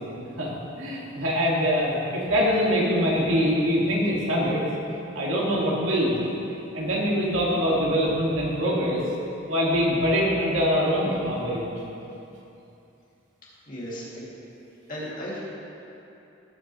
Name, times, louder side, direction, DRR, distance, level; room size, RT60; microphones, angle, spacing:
voice 1, 0.1-0.5 0.8-4.6 5.1-6.2 6.7-9.0 9.5-11.6, equal, 85° right, -5 dB, 2.0 m, -24 dB
voice 2, 13.7-14.3 14.9-15.4, equal, 45° left, -7 dB, 2.3 m, -35 dB
18.0 x 6.2 x 3.1 m, 2.9 s
head